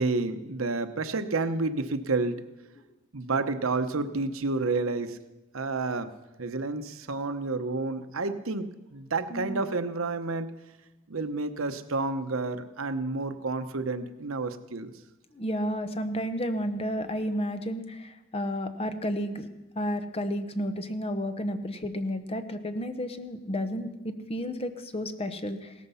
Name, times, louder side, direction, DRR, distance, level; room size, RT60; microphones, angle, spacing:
voice 1, 0.0-2.5 3.1-5.2 5.5-6.1 6.4-10.5 11.1-14.9, right 3 dB, 80° right, 9 dB, 0.9 m, -30 dB
voice 2, 9.3-9.6 15.3-19.5 19.8-25.7, equal, 30° left, 9 dB, 0.9 m, -32 dB
17.5 x 13.5 x 5.6 m, 1.0 s
head